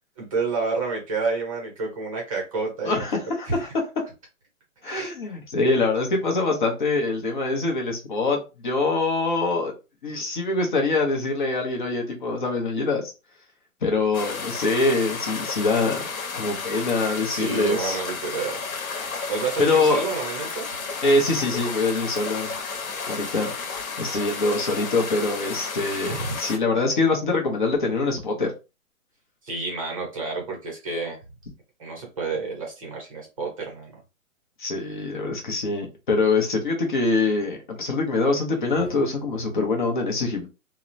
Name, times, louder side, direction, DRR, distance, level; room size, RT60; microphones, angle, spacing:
voice 1, 0.2-3.0 3.5-3.6 4.8-5.1 17.3-18.6 19.3-20.7 26.1-26.3 29.4-31.2 31.8-33.9 38.9-39.0, right 4 dB, 25° right, 0.6 m, -29 dB
voice 2, 2.8-3.7 4.8-9.7 10.0-13.1 13.8-16.0 16.3-18.0 19.6-20.0 21.0-22.5 23.1-23.5 24.0-28.5 34.6-40.5, left 3 dB, 35° left, 0.6 m, -24 dB
sound 1, 14.1-26.6, left 4 dB, 75° left, 1.0 m, -32 dB
2.8 x 2.0 x 2.5 m
hypercardioid pair, 155°, 42 cm